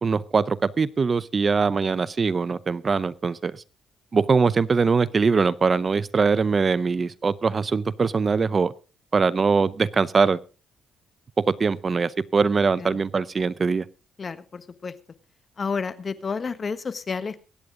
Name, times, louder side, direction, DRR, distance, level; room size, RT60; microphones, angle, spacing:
voice 1, 0.0-3.6 4.1-8.7 9.1-10.4 11.5-13.8, right 5 dB, 35° right, 18 dB, 0.7 m, -22 dB
voice 2, 14.2-14.9 15.6-17.4, left 5 dB, 40° left, 13 dB, 1.3 m, -30 dB
22.5 x 9.5 x 3.8 m, 0.33 s
cardioid pair, 90°, 0 cm